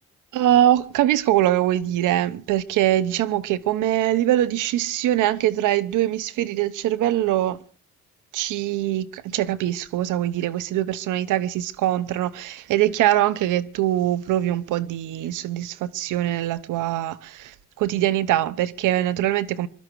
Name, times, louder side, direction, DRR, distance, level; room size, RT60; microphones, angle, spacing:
voice 1, 0.3-7.6 8.3-19.7, right 13 dB, 90° right, 1.0 m, -23 dB
23.5 x 12.5 x 4.7 m
cardioid pair, 90°, 30 cm